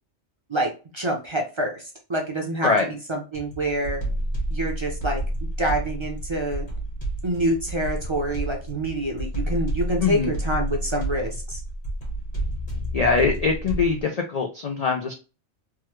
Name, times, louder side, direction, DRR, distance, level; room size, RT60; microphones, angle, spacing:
voice 1, 0.5-2.7 3.1-4.0 4.5-6.7 7.2-11.6, right 1 dB, 35° right, 0 dB, 0.5 m, -27 dB
sound 1, 3.3-14.0, right 1 dB, 40° left, 1.2 m, -30 dB
voice 2, 12.9-15.1, left 4 dB, 80° left, 3 dB, 0.3 m, -22 dB
3.5 x 2.1 x 3.0 m, 0.33 s
omnidirectional pair, 1.2 m